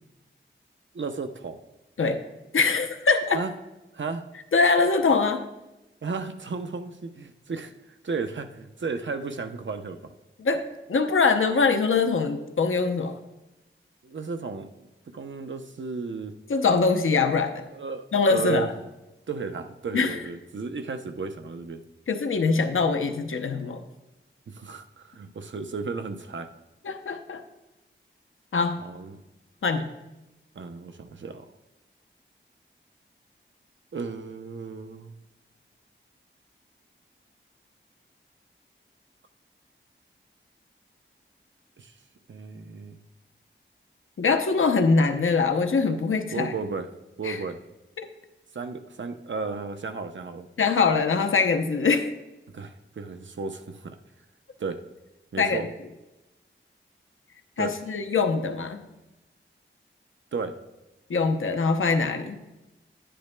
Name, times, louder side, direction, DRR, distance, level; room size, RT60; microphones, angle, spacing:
voice 1, 0.9-1.6 3.3-3.5 3.9-4.3 6.0-7.7 8.0-10.1 14.0-14.9 15.1-16.4 17.7-18.7 19.3-21.8 24.5-26.5 28.8-29.2 30.5-31.5 33.9-35.2 41.8-41.9 42.3-43.0 46.3-46.9 47.2-47.6 48.5-50.5 52.5-54.0 54.6-54.8 55.3-55.7 57.6-57.7 60.3-60.6, right 4 dB, 65° right, 7 dB, 0.7 m, -34 dB
voice 2, 2.5-3.4 4.5-5.4 10.4-13.1 16.5-17.6 18.1-18.7 19.9-20.2 22.1-23.8 26.8-27.4 28.5-28.8 29.6-29.9 44.2-46.5 47.2-47.4 48.0-48.1 50.6-52.1 55.4-55.7 57.6-58.8 61.1-62.4, left 4 dB, 80° left, 6 dB, 0.7 m, -23 dB
10.5 x 10.0 x 2.2 m, 1.0 s
wide cardioid pair, 80°, 21 cm